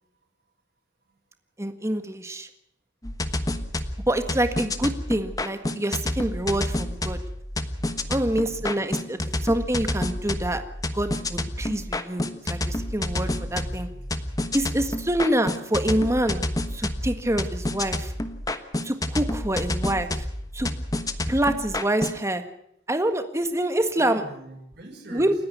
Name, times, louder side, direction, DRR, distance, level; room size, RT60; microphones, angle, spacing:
voice 1, 1.6-2.5 4.1-7.2 8.1-10.6 10.9-13.9 14.5-16.4 16.7-18.1 18.8-20.3 20.5-20.7 21.3-22.4 22.9-24.2 25.1-25.3, right 1 dB, 15° right, 8 dB, 1.7 m, -26 dB
sound 1, 3.0-22.2, left 1 dB, 20° left, 1.2 m, -29 dB
voice 2, 7.8-8.9 13.1-14.7 24.0-25.3, right 2 dB, 60° right, 1 dB, 5.5 m, -45 dB
29.0 x 10.0 x 9.5 m, 0.74 s
head